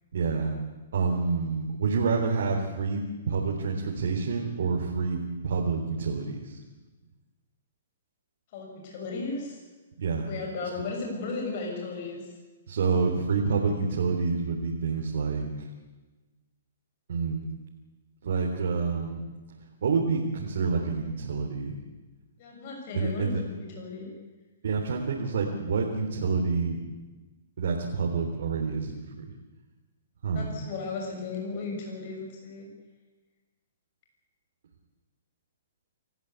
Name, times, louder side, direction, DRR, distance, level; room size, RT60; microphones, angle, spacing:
voice 1, 0.1-0.5 0.9-6.6 10.0-10.3 12.7-15.5 17.1-17.4 18.2-19.2 19.8-21.8 22.9-23.4 24.6-26.8 27.6-29.3 30.2-30.5, right 4 dB, 70° right, -1 dB, 3.7 m, -28 dB
voice 2, 8.5-9.6 10.2-12.2 22.4-24.1 30.3-32.7, left 3 dB, 45° left, 0 dB, 6.8 m, -35 dB
27.5 x 14.5 x 8.3 m, 1.2 s
hypercardioid pair, 145°, 0 cm